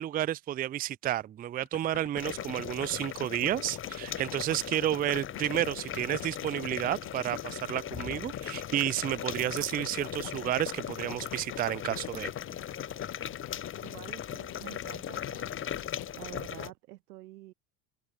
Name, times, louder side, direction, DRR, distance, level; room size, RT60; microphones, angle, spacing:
voice 1, 0.0-12.3, right 12 dB, 20° right, 0.4 m, -31 dB
sound 1, 1.6-16.1, left 35 dB, 65° left, 2.3 m, -47 dB
sound 2, 2.1-16.7, left 9 dB, 25° left, 0.9 m, -38 dB
sound 3, 8.7-13.9, right 15 dB, 45° right, 1.7 m, -50 dB
voice 2, 13.8-15.6 16.2-17.5, right 17 dB, 80° right, 2.9 m, -48 dB
hypercardioid pair, 90°, 46 cm